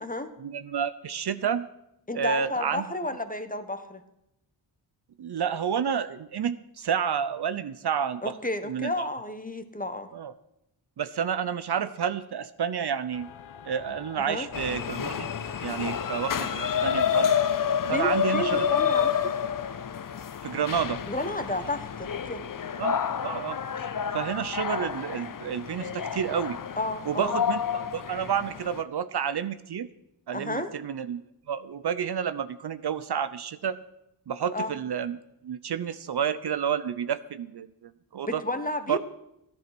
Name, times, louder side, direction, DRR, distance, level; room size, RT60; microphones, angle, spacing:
voice 1, 0.4-1.7 2.1-2.9 5.2-8.3 8.6-9.1 10.1-10.3 11.0-13.3 13.6-15.3 15.6-17.4 17.9-18.7 20.4-21.0 22.8-26.6 27.1-29.9 30.3-31.2 31.5-33.8 34.3-38.4 38.9-39.0, right 8 dB, 55° right, 13 dB, 0.7 m, -30 dB
voice 2, 2.1-4.0 8.2-10.1 14.2-14.5 17.9-19.3 21.1-22.5 26.8-27.3 30.3-30.7 34.5-34.7 38.2-39.0, left 1 dB, 15° left, 9 dB, 1.4 m, -32 dB
sound 1, 13.1-19.8, left 8 dB, 80° left, 1.0 m, -48 dB
sound 2, 14.5-28.8, left 8 dB, 45° left, 0.7 m, -29 dB
14.0 x 10.5 x 6.1 m, 0.83 s
cardioid pair, 65°, 47 cm